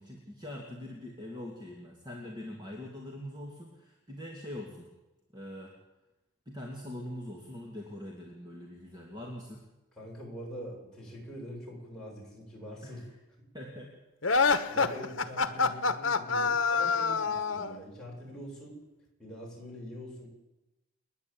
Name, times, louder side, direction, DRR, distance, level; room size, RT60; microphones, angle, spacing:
voice 1, 0.0-4.9 5.3-5.8 6.5-9.6 12.8-13.0 13.5-13.9 15.5-15.9, left 1 dB, 20° right, -1 dB, 2.7 m, -43 dB
voice 2, 10.0-13.0 14.4-18.8 19.2-20.3, equal, 5° left, -4 dB, 7.3 m, -44 dB
sound 1, 14.2-17.8, left 4 dB, 60° left, 1.2 m, -26 dB
29.5 x 10.5 x 8.9 m, 1.0 s
head